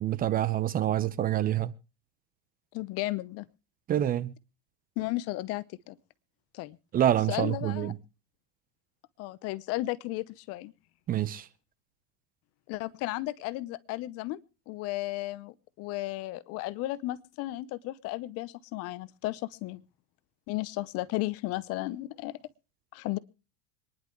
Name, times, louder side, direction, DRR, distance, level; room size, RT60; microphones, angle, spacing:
voice 1, 0.0-1.7 3.9-4.3 6.9-7.9 11.1-11.5, right 12 dB, 25° right, 0.7 m, -26 dB
voice 2, 2.7-3.4 5.0-6.0 6.5-6.8 7.3-7.9 9.2-10.7 12.7-14.4 14.7-19.8 20.5-22.4 22.9-23.2, left 18 dB, 50° left, 0.8 m, -34 dB
26.0 x 11.0 x 3.1 m
supercardioid pair, 145°, 32 cm